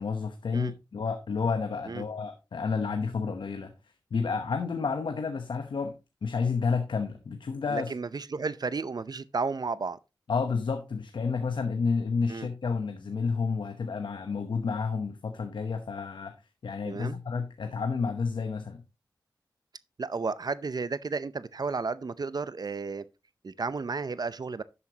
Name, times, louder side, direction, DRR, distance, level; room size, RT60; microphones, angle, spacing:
voice 1, 0.0-3.7 4.1-7.9 10.3-16.3 16.6-18.8, left 5 dB, 80° left, 0.9 m, -30 dB
voice 2, 7.7-10.0 12.3-12.5 16.8-17.2 20.0-23.1 23.4-24.6, right 4 dB, 55° right, 0.6 m, -33 dB
11.0 x 8.2 x 2.9 m
cardioid pair, 40°, 8 cm